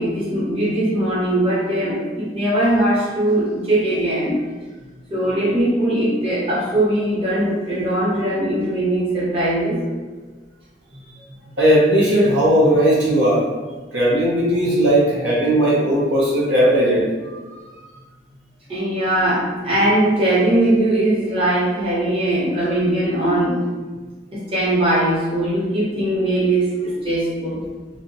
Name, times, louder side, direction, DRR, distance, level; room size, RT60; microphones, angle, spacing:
voice 1, 0.0-4.4 5.1-9.8 18.7-23.6 24.3-27.6, right 1 dB, 30° right, -9 dB, 0.8 m, -20 dB
voice 2, 11.6-13.4 13.9-17.1, right 1 dB, 80° right, -7 dB, 0.7 m, -17 dB
2.6 x 2.1 x 2.6 m, 1.4 s
head